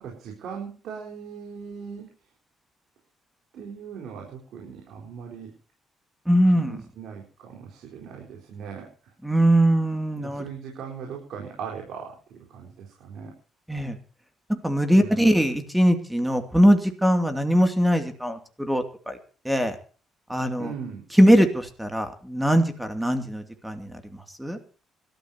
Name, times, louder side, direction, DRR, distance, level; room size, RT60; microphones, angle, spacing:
voice 1, 0.0-2.1 3.5-5.5 6.5-8.9 10.2-13.3 14.9-15.4 20.6-21.0, right 6 dB, 80° right, -1 dB, 4.5 m, -39 dB
voice 2, 6.3-6.8 9.2-10.4 13.7-14.0 14.5-19.2 19.4-19.8 20.3-20.7 21.2-24.0 24.4-24.6, equal, 5° right, 7 dB, 2.6 m, -21 dB
25.0 x 13.0 x 2.9 m, 0.40 s
cardioid pair, 90°, 0 cm